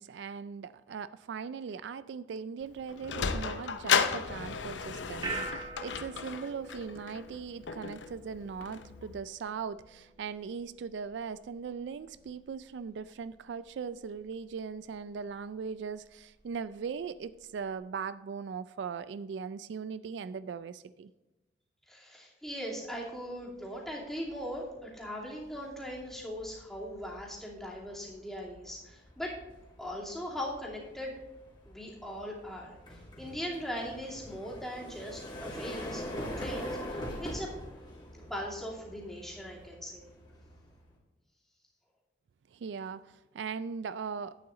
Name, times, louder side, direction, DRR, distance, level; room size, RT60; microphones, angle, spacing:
voice 1, 0.0-21.1 42.5-44.4, right 6 dB, 70° right, 15 dB, 0.3 m, -39 dB
Sliding door, 2.6-9.2, left 6 dB, 85° left, 0.7 m, -34 dB
sound 1, 5.2-17.7, right 3 dB, 25° right, 1.3 m, -47 dB
voice 2, 21.9-29.4 29.8-31.2 31.7-37.5 38.3-40.1, equal, ahead, -4 dB, 2.6 m, -40 dB
sound 2, 23.5-23.8 24.2-41.0, left 1 dB, 25° left, 2.3 m, -44 dB
11.0 x 8.7 x 3.8 m, 1.0 s
head